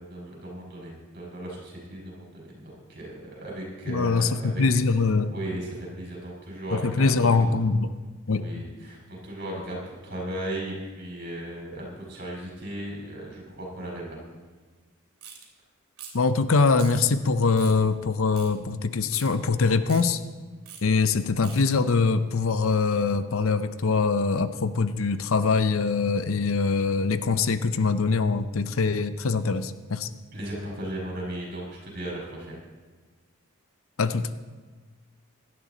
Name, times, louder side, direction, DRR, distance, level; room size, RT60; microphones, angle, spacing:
voice 1, 0.0-4.6 5.3-7.6 8.3-14.2 30.3-32.6, right 1 dB, 45° right, -3 dB, 5.4 m, -36 dB
voice 2, 3.9-5.3 6.7-7.9 8.3-8.6 16.1-20.2 20.8-30.1 34.0-34.3, left 4 dB, 70° left, 12 dB, 0.6 m, -23 dB
sound 1, 15.2-15.4 16.0-16.3 16.8-17.0 17.6-17.8 18.3-18.5 19.1-19.3 19.8-20.0 20.7-20.8 21.4-21.6, right 7 dB, 75° right, 2.9 m, -43 dB
17.5 x 12.0 x 4.0 m, 1.4 s
head